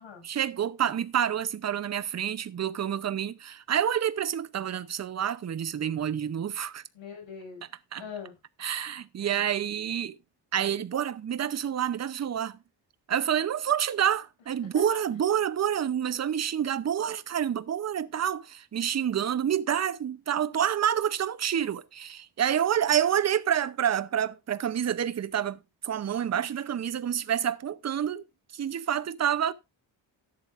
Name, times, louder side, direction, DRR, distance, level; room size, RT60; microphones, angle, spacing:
voice 1, 0.2-6.8 7.9-8.0 8.6-10.2 10.5-12.6 13.1-28.2 28.5-29.5, right 9 dB, 35° right, 0.7 m, -28 dB
voice 2, 6.9-7.6 8.0-8.4 14.7-15.0, left 6 dB, 90° left, 6.5 m, -41 dB
13.0 x 10.5 x 2.5 m
wide cardioid pair, 165°, 45 cm